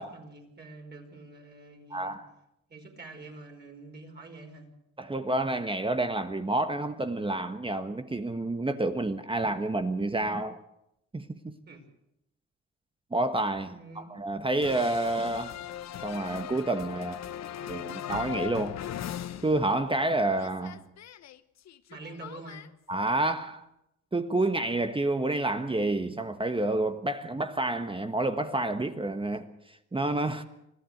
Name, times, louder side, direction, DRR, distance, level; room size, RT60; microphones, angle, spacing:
voice 1, 0.0-2.2 2.7-4.7 11.7-11.8 13.6-14.1 21.9-22.7, right 2 dB, 35° right, 5.0 m, -46 dB
voice 2, 1.9-2.2 5.0-10.6 11.1-11.6 13.1-15.6 16.0-17.2 17.7-18.8 19.4-20.8 22.9-23.7 24.1-30.4, right 2 dB, 15° right, 1.3 m, -29 dB
sound 1, 14.6-20.1 20.3-22.7, left 11 dB, 60° left, 1.0 m, -39 dB
25.0 x 15.0 x 8.0 m
cardioid pair, 90°, 30 cm